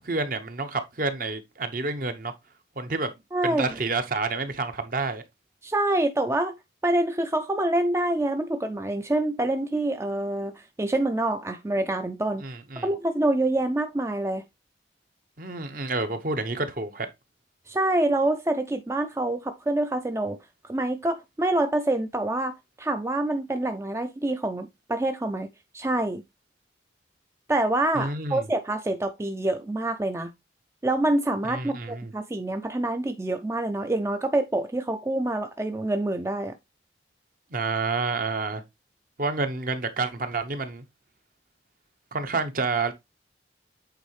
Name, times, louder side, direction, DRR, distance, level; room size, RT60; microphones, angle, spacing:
voice 1, 0.0-2.3 2.8-3.1 3.4-5.2 12.4-12.9 15.4-17.1 27.9-28.4 31.5-32.1 37.5-38.6 39.2-40.8 42.1-42.9, right 3 dB, 50° right, 0.9 m, -29 dB
voice 2, 3.3-3.7 5.6-6.6 6.8-12.4 12.8-14.4 17.7-20.4 20.6-22.5 22.8-25.5 25.7-26.2 27.5-30.3 30.8-36.6, right 1 dB, 15° right, 0.4 m, -26 dB
8.2 x 4.0 x 3.2 m
head